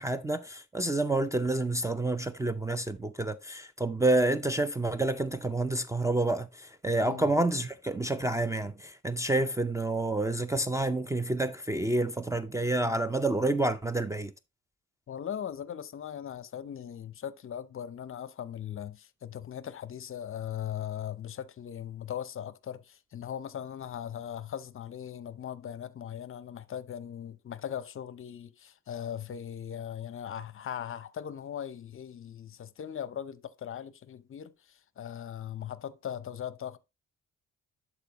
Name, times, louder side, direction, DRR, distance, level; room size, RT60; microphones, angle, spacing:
voice 1, 0.0-14.3, right 2 dB, 10° right, 0.4 m, -29 dB
voice 2, 15.1-36.8, left 9 dB, 45° left, 0.6 m, -39 dB
11.5 x 4.2 x 2.9 m
cardioid pair, 90°, 30 cm